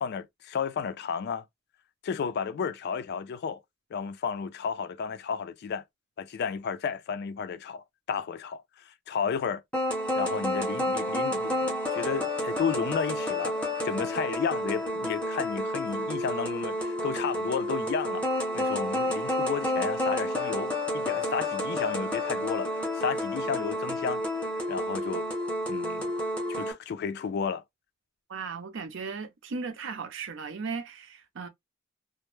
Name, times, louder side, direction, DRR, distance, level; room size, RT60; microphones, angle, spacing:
voice 1, 0.0-1.4 2.0-3.6 3.9-5.8 6.2-9.6 10.2-13.6 13.8-18.3 18.5-22.7 23.0-24.2 24.7-25.2 25.7-26.1 26.5-27.6, left 6 dB, 55° left, 0.3 m, -32 dB
sound 1, 9.7-26.7, left 1 dB, 5° left, 0.6 m, -30 dB
voice 2, 28.3-31.5, right 5 dB, 65° right, 0.6 m, -36 dB
2.1 x 2.0 x 3.0 m
head